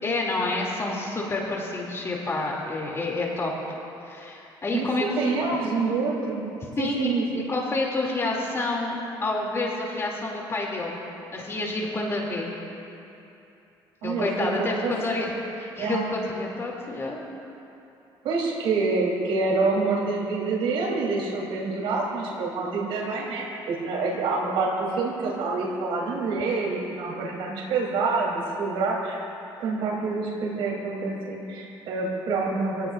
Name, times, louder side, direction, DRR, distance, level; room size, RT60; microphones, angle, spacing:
voice 1, 0.0-3.5 4.0-5.1 6.8-8.9 9.2-11.0 11.3-12.5 14.0-17.2, left 2 dB, 30° left, -3 dB, 3.1 m, -28 dB
voice 2, 5.1-6.4 6.8-7.4 14.0-14.9 15.8-16.1 18.2-29.2 29.6-32.9, right 3 dB, 80° right, -4 dB, 3.9 m, -27 dB
27.0 x 17.5 x 2.7 m, 2.9 s
cardioid pair, 105°, 9 cm